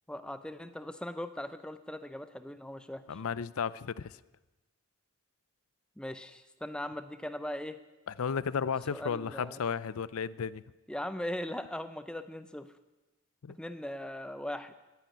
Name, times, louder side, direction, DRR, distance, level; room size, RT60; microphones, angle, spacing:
voice 1, 0.1-3.2 6.0-7.8 8.9-9.6 10.9-12.7 13.6-14.7, left 1 dB, 5° left, 11 dB, 0.6 m, -39 dB
voice 2, 3.1-4.2 8.1-10.6 13.4-13.6, left 6 dB, 75° left, 19 dB, 0.5 m, -34 dB
13.0 x 10.0 x 9.2 m, 1.1 s
head